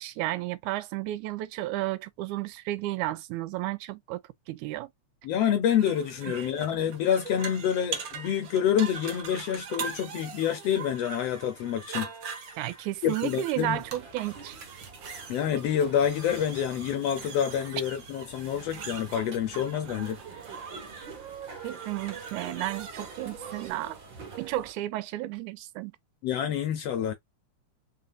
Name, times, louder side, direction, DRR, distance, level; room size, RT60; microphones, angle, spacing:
voice 1, 0.0-4.2 4.5-4.9 12.6-14.6 21.6-24.0 24.4-25.9, right 16 dB, 90° right, 2.0 m, -33 dB
voice 2, 5.2-12.1 13.0-13.8 15.3-20.2 26.2-27.1, left 9 dB, 75° left, 1.5 m, -27 dB
sound 1, 5.8-23.7, right 6 dB, 70° right, 1.1 m, -41 dB
sound 2, 13.5-24.7, right 5 dB, 50° right, 1.6 m, -46 dB
4.2 x 3.8 x 2.4 m
omnidirectional pair, 3.4 m